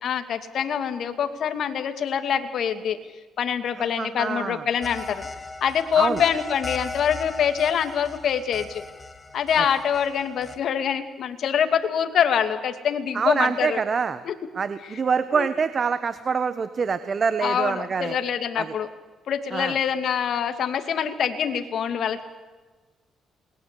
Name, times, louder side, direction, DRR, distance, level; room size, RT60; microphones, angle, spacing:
voice 1, 0.0-3.0 3.4-5.3 5.6-8.8 9.3-13.8 14.3-14.4 15.3-15.5 17.4-18.9 19.3-22.2, left 8 dB, 65° left, 9 dB, 2.5 m, -25 dB
voice 2, 3.8-4.6 5.9-6.2 9.6-9.7 13.1-14.2 14.5-18.2 18.6-18.7 19.5-19.8, right 5 dB, 45° right, 13 dB, 1.3 m, -25 dB
sound 1, 4.8-10.6, left 3 dB, 20° left, 2.0 m, -38 dB
28.0 x 21.5 x 8.5 m, 1.3 s
cardioid pair, 90°, 0 cm